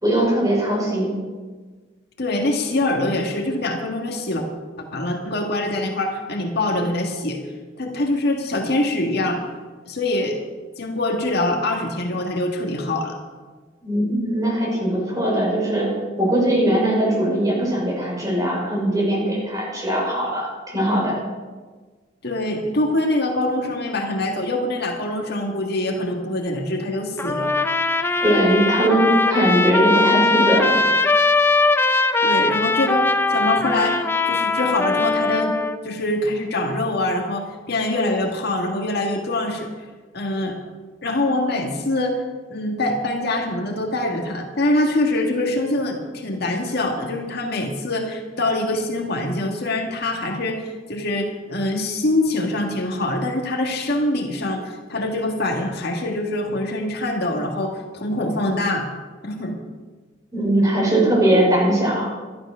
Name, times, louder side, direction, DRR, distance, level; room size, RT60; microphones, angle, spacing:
voice 1, 0.0-1.1 13.8-15.9 16.2-21.1 28.2-30.8 60.3-62.1, right 1 dB, 20° right, -3 dB, 5.3 m, -20 dB
voice 2, 2.2-4.4 4.8-7.4 7.8-9.5 9.8-10.4 10.8-13.2 22.2-27.5 32.2-35.6 35.8-39.7 40.1-40.6 41.0-42.2 42.5-58.9 59.2-59.6, left 1 dB, 60° left, 2 dB, 1.7 m, -24 dB
Trumpet, 27.2-35.8, left 3 dB, 10° left, 0.5 m, -20 dB
13.0 x 12.0 x 6.2 m, 1.4 s
head